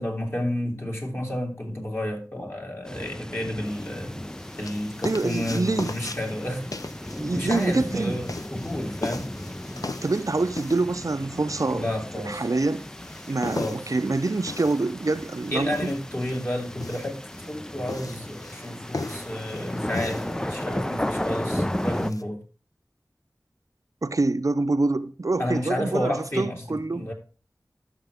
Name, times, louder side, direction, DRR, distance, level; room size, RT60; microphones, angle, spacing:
voice 1, 0.0-4.2 4.6-6.6 7.3-9.5 11.7-12.4 13.6-13.8 15.5-22.4 25.4-27.1, left 1 dB, 40° left, 2.8 m, -31 dB
sound 1, 2.8-22.1, left 1 dB, 10° left, 0.3 m, -35 dB
sound 2, 3.7-22.2, left 2 dB, 65° left, 0.7 m, -39 dB
voice 2, 5.0-5.9 7.2-8.2 10.0-11.9 12.3-12.8 13.3-15.9 24.0-27.1, right 3 dB, 60° right, 0.5 m, -26 dB
12.0 x 6.7 x 3.5 m
wide cardioid pair, 45°, 7 cm